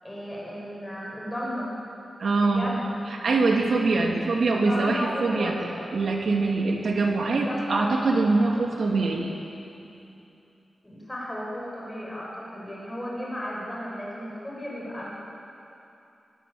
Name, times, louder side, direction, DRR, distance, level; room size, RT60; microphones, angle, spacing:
voice 1, 0.0-1.7 2.4-2.9 4.4-5.8 7.3-8.0 8.3-8.6 10.8-15.1, equal, 10° left, -5 dB, 7.0 m, -34 dB
voice 2, 2.2-2.7 3.1-5.5 5.9-9.4, right 3 dB, 65° right, 1 dB, 2.7 m, -23 dB
25.0 x 20.5 x 8.8 m, 2.8 s
wide cardioid pair, 145°, 0 cm